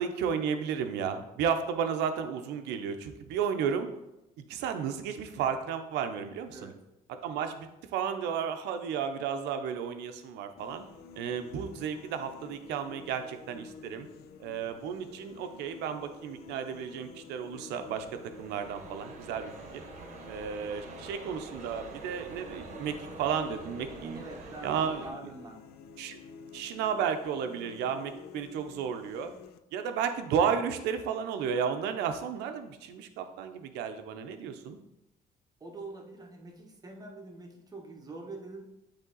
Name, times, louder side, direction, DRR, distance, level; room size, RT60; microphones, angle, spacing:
voice 1, 0.0-3.9 4.4-6.7 7.2-10.8 11.2-14.1 14.4-18.1 18.4-19.8 20.3-24.2 24.6-25.1 26.0-26.2 26.5-29.3 29.7-34.8, right 7 dB, 85° right, 7 dB, 0.6 m, -33 dB
sound 1, 10.6-29.6, left 6 dB, 70° left, 0.5 m, -51 dB
sound 2, 17.5-25.1, right 4 dB, 45° right, 1.0 m, -46 dB
voice 2, 24.1-25.6 35.6-38.6, right 2 dB, 20° right, 1 dB, 1.1 m, -45 dB
8.1 x 3.4 x 3.9 m, 0.94 s
cardioid pair, 110°, 17 cm